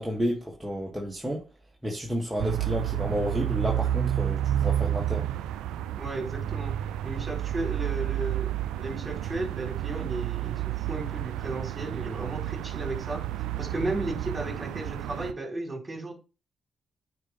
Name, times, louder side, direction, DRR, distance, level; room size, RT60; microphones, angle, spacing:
voice 1, 0.0-1.4 1.8-5.3, equal, 10° right, 2.5 m, -31 dB
sound 1, 2.4-15.3, right 12 dB, 80° right, 0.4 m, -30 dB
voice 2, 6.0-6.7 7.0-13.2 13.6-16.1, right 2 dB, 30° right, 4.1 m, -34 dB
9.3 x 4.8 x 3.6 m
hypercardioid pair, 45°, 0 cm